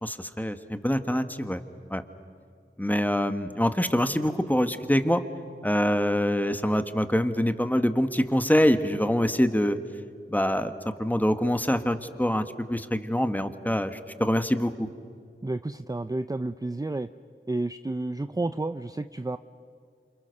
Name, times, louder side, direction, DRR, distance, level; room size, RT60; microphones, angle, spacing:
voice 1, 0.0-1.6 1.9-2.0 2.8-5.2 5.6-9.8 10.3-14.9, equal, 10° left, 9 dB, 1.4 m, -25 dB
voice 2, 15.4-17.1 17.5-19.4, right 2 dB, 15° right, 11 dB, 0.6 m, -31 dB
28.0 x 26.5 x 6.7 m, 2.3 s
wide cardioid pair, 55°, 21 cm